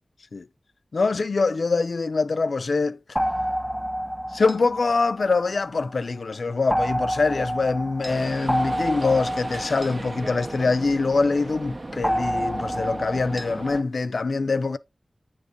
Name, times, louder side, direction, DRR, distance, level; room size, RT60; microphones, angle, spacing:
voice 1, 0.9-3.0 4.3-14.8, left 3 dB, 80° left, 0.4 m, -24 dB
sound 1, 3.2-5.9 6.7-11.2 12.0-13.8, equal, ahead, 0.4 m, -29 dB
sound 2, 8.0-13.8, right 2 dB, 50° right, 0.6 m, -37 dB
8.1 x 3.0 x 5.1 m
wide cardioid pair, 60°, 0 cm